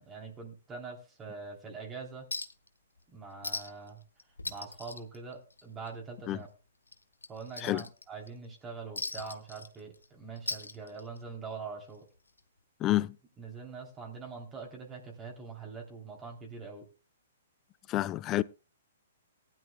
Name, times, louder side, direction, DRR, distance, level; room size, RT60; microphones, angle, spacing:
voice 1, 0.0-2.3 3.1-4.0 4.4-6.5 7.3-12.1 12.8-13.0 13.4-16.9, right 4 dB, 20° right, 3.1 m, -43 dB
Chink clink, 2.3-2.7 3.0-3.1 3.4-3.9 4.2-5.9 6.2-6.4 6.9-8.3 9.0-10.1 10.4-11.3 12.4-12.5, left 3 dB, 90° left, 1.0 m, -39 dB
voice 2, 17.9-18.4, left 15 dB, 25° left, 0.4 m, -28 dB
19.0 x 11.0 x 2.2 m
figure-of-eight pair, 120°, 0 cm